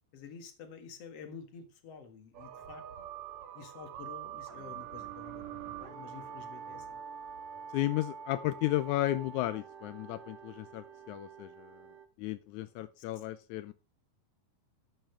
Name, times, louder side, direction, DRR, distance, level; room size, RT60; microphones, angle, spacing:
voice 1, 0.1-2.8 3.5-7.0 13.0-13.1, left 6 dB, 50° left, 7 dB, 2.4 m, -49 dB
sound 1, 2.3-12.1, right 8 dB, 60° right, 2.4 m, -45 dB
voice 2, 7.7-11.9 12.2-13.7, left 15 dB, 80° left, 12 dB, 1.7 m, -34 dB
12.5 x 8.8 x 3.3 m, 0.31 s
omnidirectional pair, 4.1 m